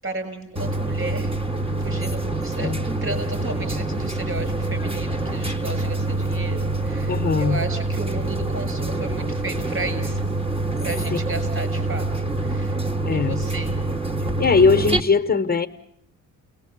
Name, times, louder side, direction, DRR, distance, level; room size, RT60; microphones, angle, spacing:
voice 1, 0.0-1.3 1.8-10.3 10.8-12.1 12.4-12.8 13.1-13.8, right 3 dB, 45° right, 9 dB, 7.2 m, -33 dB
sound 1, 0.6-15.0, right 2 dB, 20° right, 1.5 m, -26 dB
voice 2, 7.1-7.6 13.1-13.4 14.4-15.7, left 4 dB, 30° left, 8 dB, 1.1 m, -19 dB
30.0 x 19.5 x 7.3 m, 0.75 s
cardioid pair, 90°, 30 cm